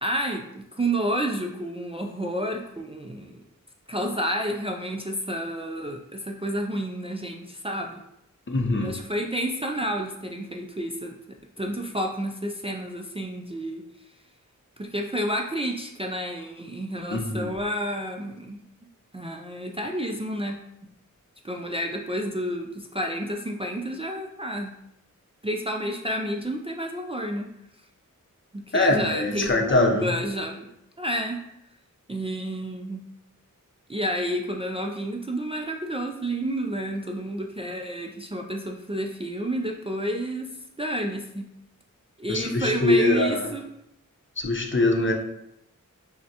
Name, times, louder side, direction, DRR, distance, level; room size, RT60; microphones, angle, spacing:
voice 1, 0.0-3.4 3.9-8.0 8.8-11.2 11.6-13.8 14.8-18.6 19.1-20.6 21.4-24.8 25.4-27.5 28.5-30.7 31.0-31.4 32.1-33.0 33.9-40.5 40.8-41.5 42.2-43.6, right 1 dB, 20° right, 1 dB, 0.4 m, -30 dB
voice 2, 8.5-9.0 17.1-17.5 28.7-30.1 42.3-43.5 44.4-45.1, left 2 dB, 40° left, 2 dB, 0.7 m, -23 dB
5.7 x 2.1 x 2.8 m, 0.81 s
cardioid pair, 45°, 32 cm